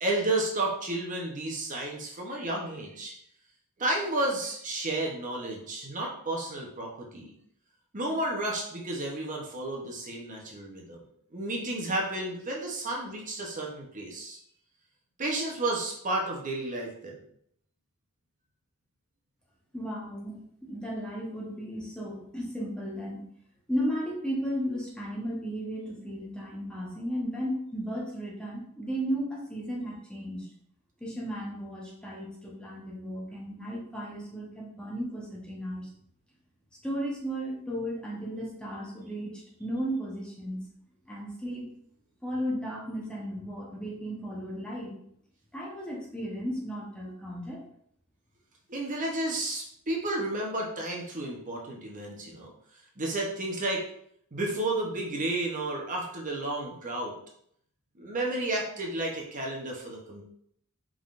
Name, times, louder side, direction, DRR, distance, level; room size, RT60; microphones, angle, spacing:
voice 1, 0.0-3.1 3.8-7.3 7.9-11.0 11.3-14.4 15.2-17.2 48.7-52.5 53.0-53.9 54.3-57.1 58.0-60.2, right 2 dB, 35° right, -1 dB, 0.8 m, -32 dB
voice 2, 19.7-23.2 23.7-30.5 31.0-35.9 36.8-40.6 41.1-41.7 42.2-44.9 45.5-47.6, equal, 5° left, -4 dB, 0.9 m, -35 dB
5.3 x 3.7 x 2.5 m, 0.68 s
head